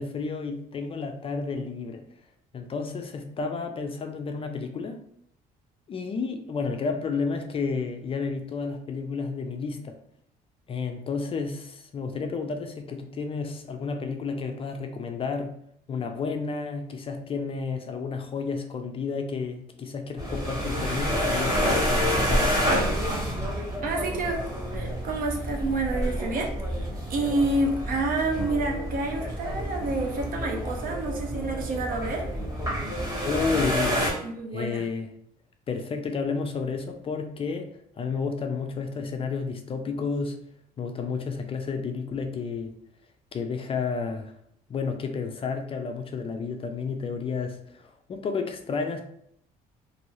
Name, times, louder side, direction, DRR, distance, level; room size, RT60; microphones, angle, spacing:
voice 1, 0.0-2.0 2.5-5.0 5.9-10.0 10.7-15.5 15.9-22.7 33.2-34.1 34.5-35.1 35.7-37.7 38.0-40.4 40.8-42.7 43.3-44.3 44.7-49.0, left 5 dB, 35° left, 5 dB, 0.4 m, -31 dB
sound 1, 20.2-34.1, equal, 20° right, 1.4 m, -28 dB
voice 2, 23.6-24.4 24.7-32.2 34.2-34.8, right 2 dB, 55° right, 2 dB, 0.7 m, -29 dB
2.6 x 2.6 x 3.0 m, 0.71 s
cardioid pair, 110°, 17 cm